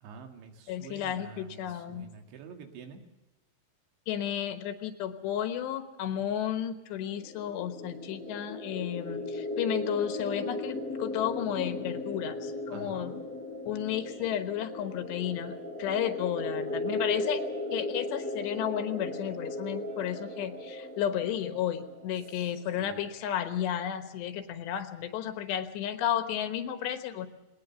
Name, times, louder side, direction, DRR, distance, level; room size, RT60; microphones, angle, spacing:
voice 1, 0.0-3.0 12.7-13.2 22.7-23.1, right 5 dB, 85° right, 5 dB, 4.2 m, -47 dB
voice 2, 0.7-2.1 4.1-13.1 13.7-15.5 15.8-17.4 17.7-27.3, left 10 dB, 80° left, 9 dB, 3.4 m, -33 dB
sound 1, 7.2-22.8, left 2 dB, 5° left, 1.8 m, -37 dB
19.5 x 19.0 x 6.9 m, 1.0 s
omnidirectional pair, 5.0 m